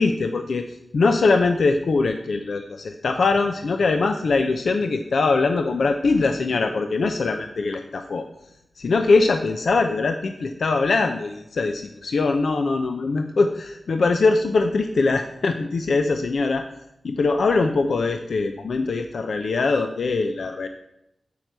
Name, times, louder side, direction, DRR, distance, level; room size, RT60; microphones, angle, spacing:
voice 1, 0.0-8.3 8.8-16.7 17.0-20.7, left 3 dB, 75° left, 6 dB, 0.6 m, -22 dB
12.0 x 4.6 x 6.7 m, 0.85 s
cardioid pair, 45°, 0 cm